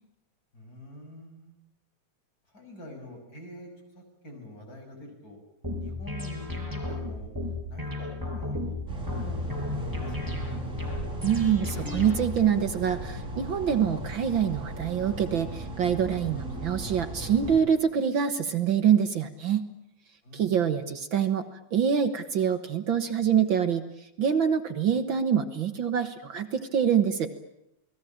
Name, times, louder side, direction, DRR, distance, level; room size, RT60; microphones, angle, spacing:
voice 1, 0.5-1.5 2.5-5.4 5.8-7.3 7.6-10.3 20.2-20.6, equal, 30° left, 3 dB, 6.8 m, -46 dB
sound 1, 5.6-12.5, left 2 dB, 5° right, 5.7 m, -34 dB
sound 2, 8.9-17.6, right 1 dB, 25° right, 6.5 m, -36 dB
voice 2, 11.2-19.6 20.3-21.4 21.7-23.8 24.2-27.3, right 8 dB, 55° right, 9 dB, 1.6 m, -25 dB
28.5 x 19.5 x 8.8 m, 0.85 s
omnidirectional pair, 3.4 m